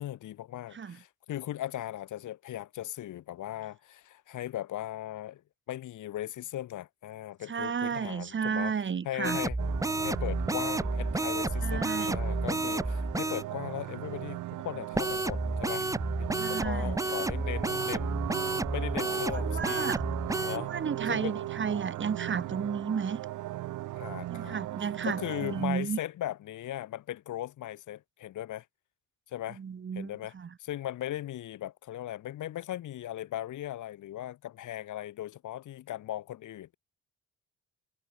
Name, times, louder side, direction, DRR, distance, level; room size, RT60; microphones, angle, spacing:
voice 1, 0.0-5.4 5.7-8.7 9.0-9.6 10.0-15.9 16.2-18.3 18.7-20.0 20.4-20.7 21.1-21.5 24.0-24.6 25.0-28.7 29.3-29.6 29.9-30.3 30.6-36.8, left 13 dB, 80° left, 5.8 m, -38 dB
voice 2, 7.5-9.4 11.6-12.2 16.4-17.0 19.3-20.0 20.5-23.2 24.3-26.0 29.6-30.5, right 6 dB, 40° right, 2.0 m, -33 dB
sound 1, 9.2-13.4 14.9-20.6, right 2 dB, 10° right, 1.2 m, -31 dB
sound 2, 9.6-25.7, right 16 dB, 90° right, 2.4 m, -38 dB
cardioid pair, 90°, 30 cm